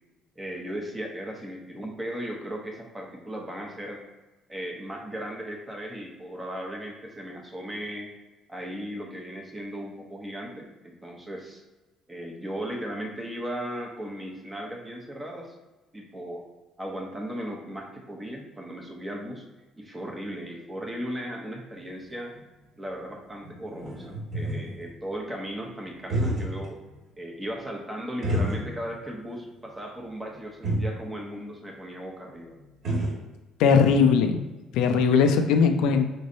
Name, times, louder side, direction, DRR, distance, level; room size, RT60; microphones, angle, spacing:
voice 1, 0.4-4.0 4.5-8.1 8.5-11.6 12.1-15.5 15.9-16.4 16.8-19.4 19.8-22.3 22.8-26.8 27.2-32.6, equal, 15° right, 1 dB, 0.8 m, -36 dB
sound 1, 21.8-21.9 22.3-22.4 23.1-23.2 23.4-24.9 25.9-26.8 27.1-27.2 28.2-29.1 29.3-29.4 30.3-30.4 30.6-31.0 32.3-32.4 32.6-33.2, right 1 dB, 50° right, 1.4 m, -29 dB
voice 2, 33.6-34.4 34.7-36.1, left 6 dB, 85° left, 7 dB, 0.4 m, -19 dB
5.0 x 3.1 x 2.6 m, 1.1 s
cardioid pair, 120°, 0 cm